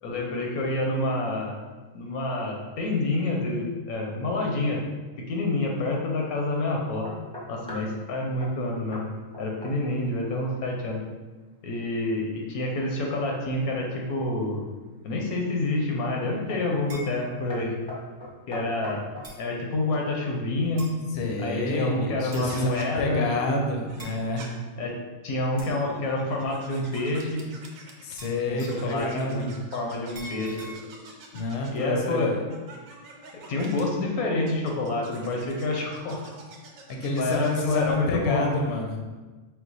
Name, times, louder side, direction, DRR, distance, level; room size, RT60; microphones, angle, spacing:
voice 1, 0.0-1.6 1.9-4.8 5.3-7.1 7.5-9.0 9.4-11.0 11.6-14.6 15.0-17.7 18.5-19.0 19.4-20.8 21.4-23.3 24.8-24.9 25.2-27.4 28.5-30.6 31.7-32.3 33.5-36.2 37.1-38.5, left 2 dB, 85° left, 0 dB, 1.2 m, -28 dB
sound 1, 7.0-8.0 8.4-8.6 8.9-9.1 9.3-10.0 10.3-10.7 14.0-14.7 15.3-15.7 16.5-16.7 17.0-17.2 17.5-19.3, left 1 dB, 5° left, 0.6 m, -40 dB
sound 2, 16.9-17.1 18.2-18.3 19.2-19.4 20.8-21.0 22.3-22.6 24.0-24.2 25.6-25.8 28.2-28.9 30.1-30.7, right 1 dB, 40° right, 0.4 m, -43 dB
voice 2, 21.1-24.4 28.0-29.5 31.3-32.4 36.9-39.0, left 2 dB, 60° left, 1 dB, 0.7 m, -28 dB
sound 3, 22.4-22.9 23.9-24.5 25.5-28.3 28.6-31.9 32.5-33.8 34.5-37.9, right 3 dB, 75° right, 1.0 m, -46 dB
4.6 x 2.0 x 3.9 m, 1.2 s
omnidirectional pair, 1.5 m